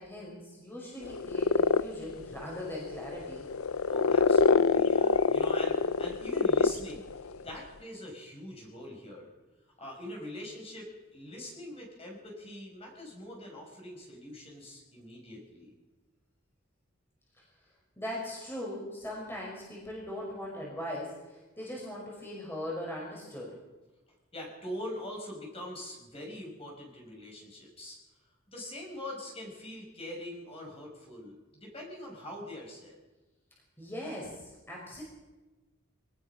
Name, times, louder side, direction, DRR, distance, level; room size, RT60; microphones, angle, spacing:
voice 1, 0.0-3.5 17.4-17.5 18.0-23.6 33.8-35.0, left 1 dB, 10° left, -3 dB, 5.2 m, -40 dB
sound 1, 1.0-7.4, left 4 dB, 85° left, 0.6 m, -26 dB
voice 2, 3.8-7.1 7.4-9.3 9.8-15.7 24.3-28.0 28.5-32.9, left 1 dB, 25° left, -1 dB, 6.1 m, -43 dB
23.5 x 19.5 x 5.9 m, 1.1 s
head